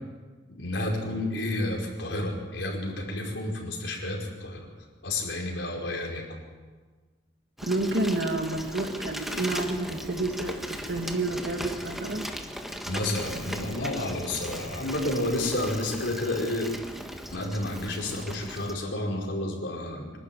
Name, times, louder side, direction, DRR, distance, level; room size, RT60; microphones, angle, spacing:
voice 1, 0.5-4.7 5.0-6.3 12.8-16.7 17.3-20.1, left 1 dB, 75° left, 0 dB, 4.9 m, -30 dB
Bicycle, 7.6-18.7, equal, ahead, 1.5 m, -38 dB
voice 2, 7.6-12.3, right 2 dB, 65° right, 3 dB, 2.2 m, -29 dB
25.5 x 12.5 x 9.4 m, 1.4 s
head